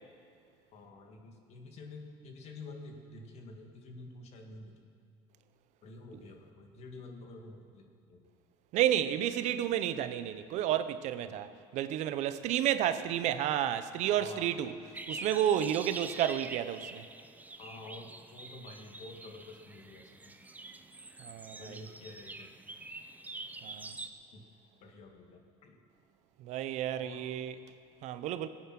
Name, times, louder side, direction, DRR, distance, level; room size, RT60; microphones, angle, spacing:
voice 1, 0.7-4.7 5.8-8.2 11.2-11.4 14.1-14.8 17.6-20.3 21.6-22.5 24.3-24.4 24.8-25.8 27.0-27.3, left 2 dB, 55° left, 2.0 m, -49 dB
voice 2, 8.7-14.7 15.1-17.0 21.2-21.8 23.6-23.9 26.4-27.5 28.0-28.5, right 11 dB, 65° right, 0.7 m, -31 dB
sound 1, 14.9-24.1, right 3 dB, 15° right, 0.6 m, -46 dB
17.5 x 8.8 x 6.0 m
supercardioid pair, 100°, 13 cm